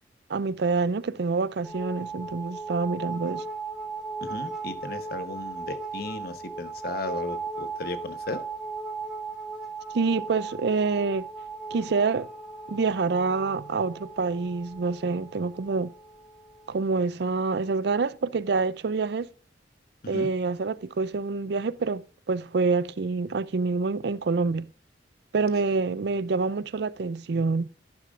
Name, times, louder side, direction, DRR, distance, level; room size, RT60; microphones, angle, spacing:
voice 1, 0.3-3.4 9.9-11.3 11.7-12.3 12.7-15.9 16.7-19.3 20.1-24.7 25.3-27.7, right 4 dB, 65° right, 0.5 m, -27 dB
sound 1, 1.6-16.8, right 4 dB, 5° right, 3.5 m, -37 dB
voice 2, 4.2-8.4 20.0-20.3, left 2 dB, 60° left, 1.2 m, -35 dB
12.0 x 10.5 x 2.5 m
head